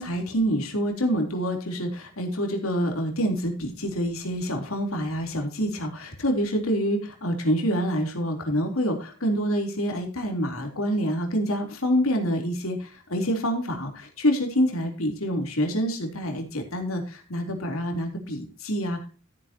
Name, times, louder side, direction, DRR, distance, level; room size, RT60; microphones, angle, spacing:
voice 1, 0.0-19.1, equal, 90° left, 3 dB, 3.5 m, -27 dB
15.0 x 9.8 x 2.9 m, 0.34 s
head